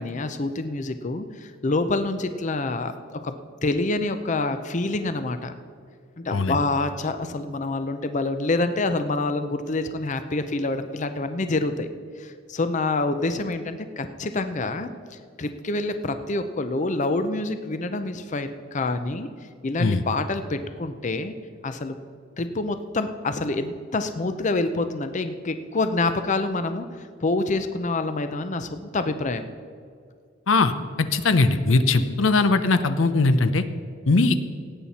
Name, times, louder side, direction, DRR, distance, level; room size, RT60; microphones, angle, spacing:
voice 1, 0.0-2.9 3.2-3.4 3.6-5.5 6.2-11.9 12.2-19.3 19.6-21.3 21.6-22.0 22.4-26.9 27.2-29.5 31.8-32.2, left 2 dB, 40° left, 9 dB, 0.6 m, -27 dB
voice 2, 31.1-33.6 34.1-34.3, left 3 dB, 80° left, 11 dB, 0.7 m, -20 dB
17.0 x 8.7 x 4.2 m, 2.2 s
head